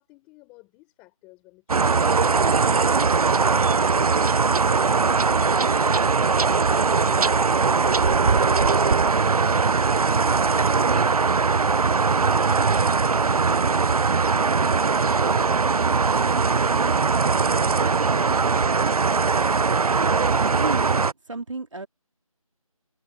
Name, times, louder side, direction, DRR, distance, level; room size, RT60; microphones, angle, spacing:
voice 1, 0.0-2.9, left 24 dB, 5° left, 4.4 m, -49 dB
sound 1, 1.7-21.1, right 4 dB, 80° right, 0.5 m, -20 dB
voice 2, 20.2-21.9, right 3 dB, 55° right, 2.5 m, -34 dB
figure-of-eight pair, 170°, 19 cm